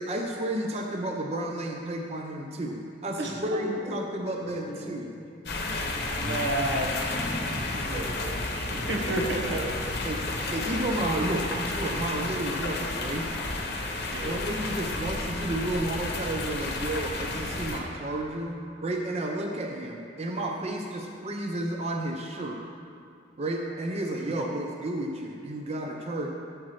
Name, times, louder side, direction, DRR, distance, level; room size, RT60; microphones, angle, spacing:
voice 1, 0.0-5.1 8.8-9.2 10.0-10.2 10.5-13.3 14.2-22.6 23.4-26.3, right 1 dB, 35° right, 1 dB, 0.5 m, -32 dB
voice 2, 3.2-3.7 5.6-9.7 14.0-14.4 24.3-24.4, right 1 dB, 85° right, 0 dB, 1.3 m, -33 dB
sound 1, 4.4-7.5, left 1 dB, 40° left, 0.6 m, -40 dB
sound 2, 5.5-17.8, left 2 dB, 65° left, 1.0 m, -32 dB
12.5 x 7.3 x 3.2 m, 2.4 s
head